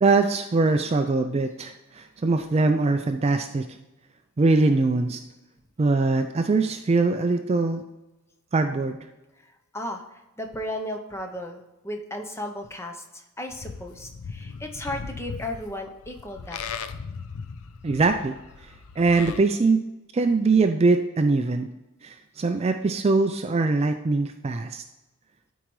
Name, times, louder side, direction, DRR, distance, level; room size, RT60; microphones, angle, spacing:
voice 1, 0.0-3.7 4.4-5.2 5.8-7.8 8.5-9.0 17.8-18.3 19.0-19.8 20.1-21.7 22.0-24.8, right 3 dB, 30° right, 7 dB, 0.3 m, -22 dB
voice 2, 10.4-16.6, left 1 dB, 10° left, 4 dB, 0.7 m, -35 dB
Livestock farm animals working animals, 13.5-19.4, left 5 dB, 75° left, 0.5 m, -38 dB
12.5 x 4.6 x 3.1 m, 1.0 s
head